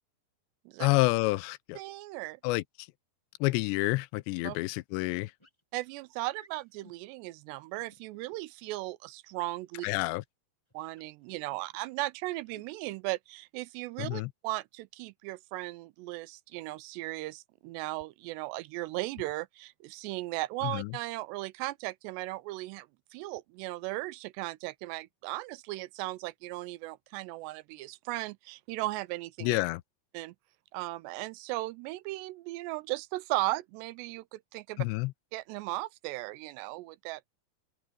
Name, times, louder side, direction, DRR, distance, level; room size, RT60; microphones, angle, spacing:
voice 1, 0.8-1.8 2.4-2.6 3.4-5.3 9.8-10.2 14.0-14.3 20.6-20.9 29.4-29.8 34.8-35.1, left 21 dB, 90° left, 2.8 m, -28 dB
voice 2, 1.8-2.4 4.4-4.6 5.7-9.9 10.7-22.9 23.1-29.6 30.1-30.4 30.7-34.9 35.3-37.2, right 19 dB, 85° right, 2.7 m, -37 dB
sound 1, 5.4-5.6 6.3-7.0 7.7-8.4 9.9-10.2 10.7-11.8 12.3-12.7, equal, 5° left, 7.6 m, -59 dB
open air
omnidirectional pair, 4.9 m